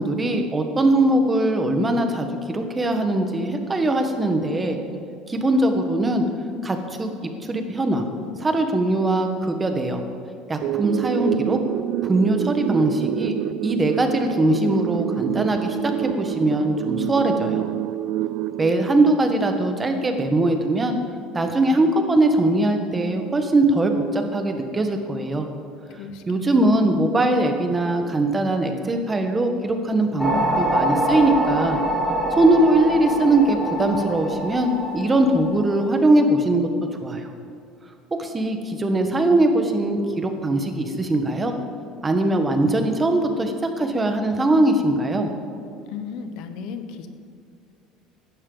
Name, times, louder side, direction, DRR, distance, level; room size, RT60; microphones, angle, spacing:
voice 1, 0.0-4.8 5.3-6.2 6.6-7.1 7.4-8.1 8.4-10.0 10.5-11.6 12.0-13.4 13.6-17.6 18.6-21.0 21.3-25.5 26.3-31.8 32.3-36.7 37.0-37.3 38.2-41.5 42.0-45.3, right 2 dB, 15° right, 5 dB, 1.3 m, -21 dB
sound 1, 10.6-19.6, right 13 dB, 60° right, 0.3 m, -27 dB
voice 2, 25.9-26.7 45.9-47.1, left 6 dB, 65° left, 9 dB, 1.2 m, -35 dB
sound 2, 30.2-35.9, equal, 5° left, 2.6 m, -25 dB
16.0 x 12.0 x 4.0 m, 2.4 s
cardioid pair, 140°, 0 cm